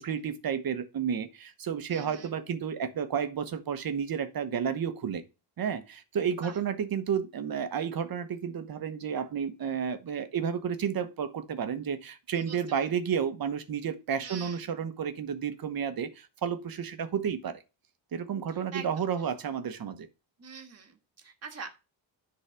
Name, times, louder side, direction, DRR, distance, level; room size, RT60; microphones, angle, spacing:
voice 1, 0.0-5.2 5.6-17.6 18.1-20.1, right 7 dB, 50° right, 1.1 m, -31 dB
voice 2, 1.9-2.3 6.4-6.6 12.3-12.9 14.2-14.7 18.5-19.0 20.4-21.7, right 6 dB, 30° right, 1.5 m, -44 dB
10.0 x 4.1 x 5.7 m
wide cardioid pair, 175°, 46 cm